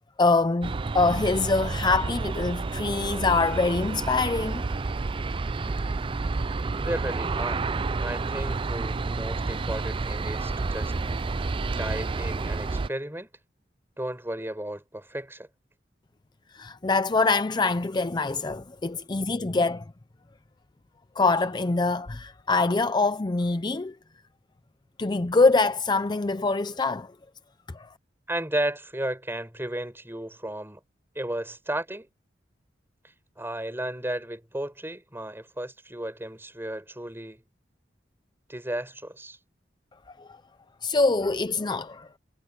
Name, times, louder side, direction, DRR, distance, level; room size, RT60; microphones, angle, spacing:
voice 1, 0.2-4.6 16.5-19.8 21.2-23.9 25.0-27.1 27.7-27.9 40.2-40.3 40.8-42.2, left 3 dB, 25° left, 0.5 m, -24 dB
Aircraft, 0.6-12.9, right 3 dB, 30° right, 0.4 m, -30 dB
voice 2, 6.8-7.7 8.0-10.9 11.8-13.3 14.0-15.5 28.3-30.8 31.1-32.1 33.4-37.4 38.5-39.4, right 1 dB, 15° right, 5.9 m, -34 dB
head